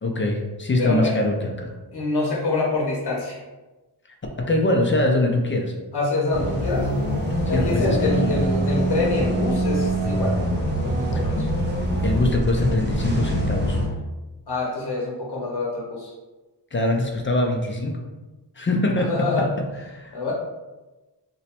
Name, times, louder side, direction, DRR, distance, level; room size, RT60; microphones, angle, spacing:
voice 1, 0.0-1.7 4.4-5.7 7.5-8.4 11.1-11.4 12.0-13.8 16.7-18.1 18.6-19.2 19.9-20.3, left 1 dB, 30° left, 1 dB, 0.4 m, -23 dB
voice 2, 0.8-1.2 1.9-3.4 5.9-6.9 7.5-10.4 10.8-11.4 14.5-16.1 19.1-19.5 20.1-20.3, left 3 dB, 65° left, -4 dB, 0.8 m, -25 dB
sound 1, 6.3-13.9, right 1 dB, 25° right, 0.8 m, -24 dB
3.0 x 2.1 x 4.2 m, 1.1 s
wide cardioid pair, 125°, 43 cm